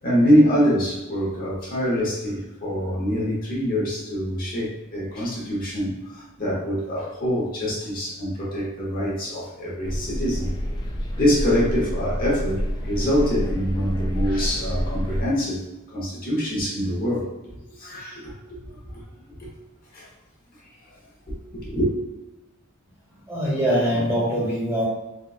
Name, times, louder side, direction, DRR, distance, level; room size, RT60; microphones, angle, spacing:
voice 1, 0.0-10.5 11.2-15.6 15.9-17.2 17.8-18.3 18.9-19.5 19.9-20.1 21.3-21.9, equal, 45° left, -5 dB, 1.0 m, -24 dB
sound 1, 9.8-15.2, equal, 20° left, 0.3 m, -28 dB
voice 2, 23.3-24.8, equal, 15° right, -7 dB, 1.2 m, -23 dB
3.9 x 2.3 x 2.4 m, 1.0 s
head